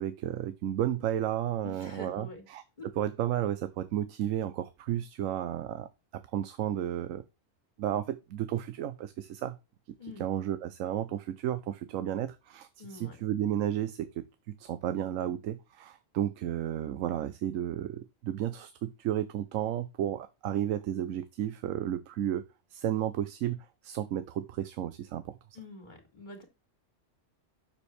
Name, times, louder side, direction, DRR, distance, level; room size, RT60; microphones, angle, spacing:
voice 1, 0.0-5.9 6.3-7.2 7.8-9.6 10.2-12.7 12.9-25.3, right 11 dB, 85° right, 1.0 m, -33 dB
voice 2, 1.6-2.5 2.8-2.9 10.0-10.2 12.8-13.2 25.5-26.4, left 2 dB, 35° left, 2.6 m, -45 dB
7.1 x 6.9 x 3.3 m
omnidirectional pair, 1.3 m